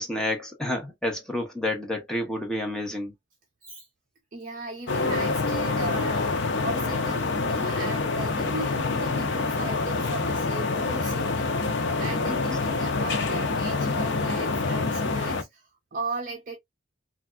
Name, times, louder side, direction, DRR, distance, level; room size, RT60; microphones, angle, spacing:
voice 1, 0.0-3.1 12.3-12.4, left 1 dB, 5° left, 0.7 m, -29 dB
voice 2, 4.3-11.3 11.6-15.6 15.9-16.6, right 2 dB, 45° right, 0.6 m, -37 dB
sound 1, 4.9-15.4, left 3 dB, 70° left, 0.6 m, -26 dB
3.3 x 2.3 x 2.2 m
head